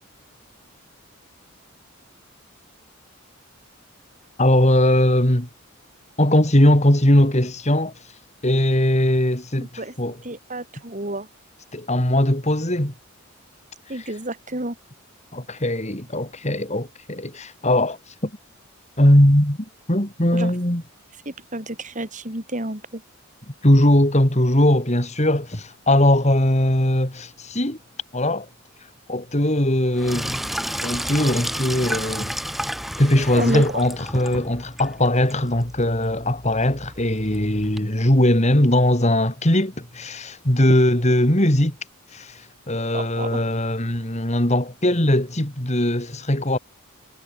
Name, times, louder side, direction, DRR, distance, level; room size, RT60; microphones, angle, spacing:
voice 1, 4.4-5.5 6.2-7.9 8.4-10.2 11.7-12.9 14.0-14.1 15.3-18.0 18.2-18.3 19.0-19.6 19.9-20.8 23.6-27.8 28.1-28.5 29.1-30.4 30.8-32.3 33.0-41.8 42.1-42.4 42.7-46.6, left 1 dB, 35° left, 3.6 m, -20 dB
voice 2, 10.2-11.3 13.9-14.8 20.3-20.5 21.3-23.0 33.3-33.8 42.9-43.4, right 1 dB, 35° right, 4.5 m, -30 dB
Sink (filling or washing), 29.9-37.8, equal, ahead, 6.2 m, -32 dB
head